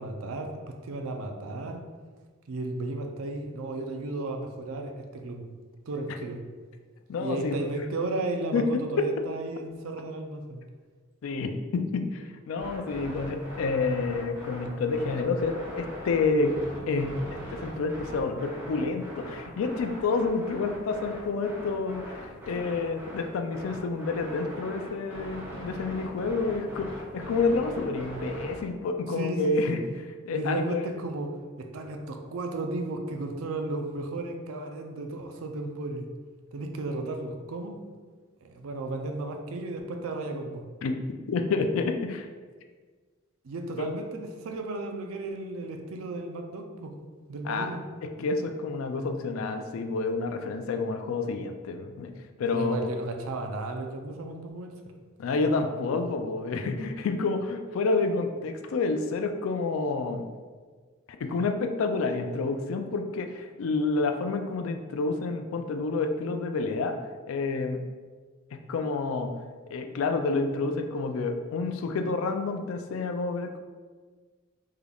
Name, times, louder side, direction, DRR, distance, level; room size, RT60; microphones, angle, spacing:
voice 1, 0.0-1.8 2.5-5.4 5.9-6.4 7.2-10.6 29.1-29.8 30.3-36.1 36.5-37.8 38.4-40.6 43.4-46.9 47.3-47.8 52.5-54.9, right 2 dB, 85° right, 4 dB, 0.4 m, -34 dB
voice 2, 7.1-7.7 8.5-9.1 11.2-16.6 16.8-29.8 30.3-30.9 40.8-40.9 41.3-42.3 43.8-43.9 47.4-47.8 48.0-52.1 52.4-52.9 55.2-60.3 61.1-67.0 67.3-67.8 68.5-69.3 69.7-73.6, left 3 dB, 80° left, 7 dB, 0.3 m, -29 dB
sound 1, 12.6-28.6, equal, 10° right, 0.8 m, -41 dB
3.7 x 3.4 x 2.3 m, 1.5 s
head